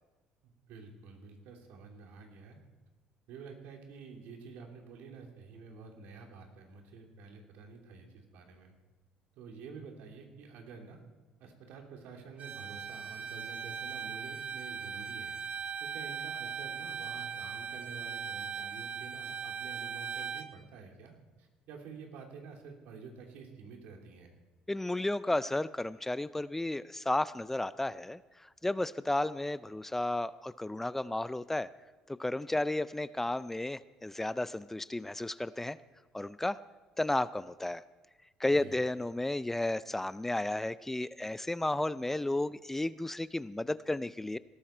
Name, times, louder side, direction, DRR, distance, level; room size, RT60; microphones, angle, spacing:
voice 1, 0.4-2.6 3.3-8.7 9.3-11.0 11.4-15.4 15.8-24.3 38.5-38.8, right 5 dB, 75° right, 2 dB, 2.9 m, -49 dB
Bowed string instrument, 12.4-20.5, right 6 dB, 50° right, 1.4 m, -39 dB
voice 2, 24.7-28.2 28.6-31.7 32.1-35.8 36.1-36.6 37.0-37.8 38.4-44.4, left 1 dB, 10° left, 16 dB, 0.4 m, -33 dB
19.0 x 13.0 x 4.5 m, 1.2 s
supercardioid pair, 80°, 3 cm